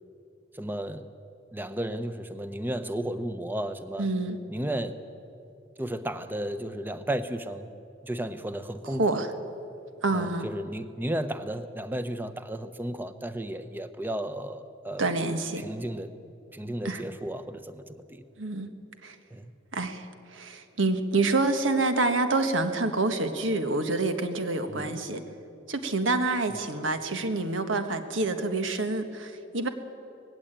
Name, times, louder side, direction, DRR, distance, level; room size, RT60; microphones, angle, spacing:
voice 1, 0.5-1.1 1.5-4.1 4.5-5.0 5.8-7.7 8.0-9.2 10.1-15.1 15.6-16.1 16.5-18.2 19.3-19.5 24.7-25.0 26.5-26.6, right 1 dB, 10° right, 11 dB, 0.7 m, -34 dB
voice 2, 4.0-4.4 9.0-9.3 10.0-10.5 15.0-15.6 16.8-17.0 18.4-18.7 19.0-19.1 19.7-20.0 20.3-25.2 25.7-29.7, right 2 dB, 90° right, 7 dB, 1.5 m, -27 dB
19.0 x 16.0 x 8.9 m, 2.6 s
head